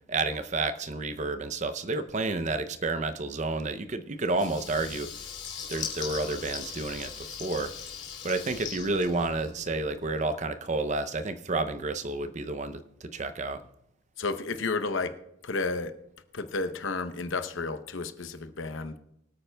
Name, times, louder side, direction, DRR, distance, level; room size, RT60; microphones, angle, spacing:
voice 1, 0.1-5.1 5.7-7.1 7.4-7.7 8.2-13.6, right 3 dB, 35° right, 10 dB, 0.6 m, -30 dB
Water tap faucet / Liquid, 4.3-9.8, left 7 dB, 60° left, 2.2 m, -40 dB
voice 2, 14.2-15.1 15.4-15.9 16.3-18.9, left 3 dB, 80° left, 10 dB, 0.8 m, -31 dB
24.0 x 8.8 x 2.3 m, 0.81 s
head